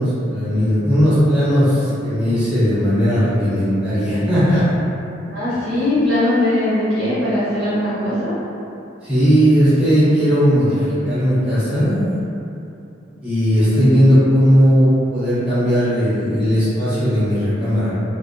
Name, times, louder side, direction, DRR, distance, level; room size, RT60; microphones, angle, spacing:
voice 1, 0.0-4.7 9.0-12.2 13.2-17.9, equal, 5° right, -13 dB, 0.7 m, -17 dB
voice 2, 5.3-8.3 13.6-14.2, left 1 dB, 85° right, -11 dB, 1.2 m, -20 dB
2.4 x 2.0 x 2.6 m, 2.7 s
head